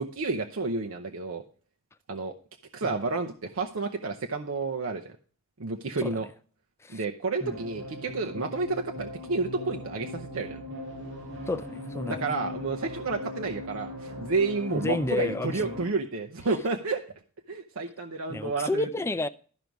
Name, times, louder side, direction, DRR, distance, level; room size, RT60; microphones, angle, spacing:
voice 1, 0.0-1.4 2.1-2.3 2.7-5.2 5.6-6.3 6.9-10.6 12.1-17.0 17.5-18.9, right 3 dB, 80° right, 0.7 m, -30 dB
sound 1, 7.4-15.9, left 2 dB, 60° right, 5.3 m, -39 dB
voice 2, 11.5-12.3 14.7-15.8 18.3-19.3, left 2 dB, 10° left, 0.4 m, -30 dB
12.5 x 5.2 x 4.7 m
head